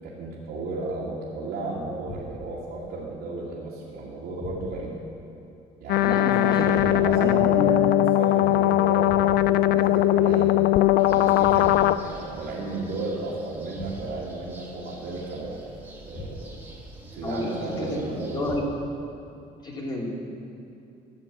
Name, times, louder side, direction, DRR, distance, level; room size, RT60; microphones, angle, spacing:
voice 1, 0.0-5.0 5.8-10.5 10.9-15.6 16.0-16.6 17.1-18.5, right 2 dB, 75° right, -7 dB, 2.4 m, -33 dB
sound 1, 2.0-2.7 4.4-5.0 6.7-7.4 9.1-9.7 11.4-12.0 13.7-14.4 16.1-16.8 18.5-19.1, left 1 dB, 40° left, 1.4 m, -41 dB
sound 2, 5.9-12.0, left 15 dB, 70° left, 0.4 m, -20 dB
voice 2, 6.0-6.7 7.2-7.7 17.2-18.6 19.6-20.1, left 1 dB, 25° left, -2 dB, 2.7 m, -30 dB
sound 3, 11.0-18.6, right 1 dB, 10° right, 2.0 m, -47 dB
13.5 x 7.0 x 7.6 m, 2.8 s
cardioid pair, 110°, 17 cm